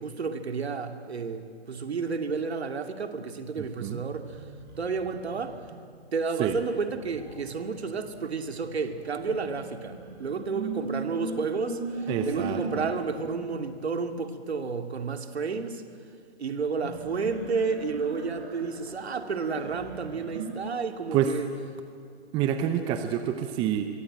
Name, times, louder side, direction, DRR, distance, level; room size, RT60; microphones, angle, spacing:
voice 1, 0.0-4.4 4.8-5.6 6.1-15.8 16.4-21.5, right 5 dB, 75° right, 7 dB, 2.6 m, -31 dB
voice 2, 3.6-4.0 6.4-6.6 12.1-12.9 21.1-21.3 22.3-23.9, right 10 dB, 15° right, 8 dB, 0.8 m, -27 dB
sound 1, 4.0-5.8 6.8-13.6 16.7-20.5, right 3 dB, 50° right, 7.0 m, -39 dB
Laughter, 7.1-7.3 7.6-9.0 9.4-9.7 10.1-12.9, left 2 dB, 15° left, 6.2 m, -53 dB
26.5 x 23.0 x 8.8 m, 2.3 s
hypercardioid pair, 145°, 32 cm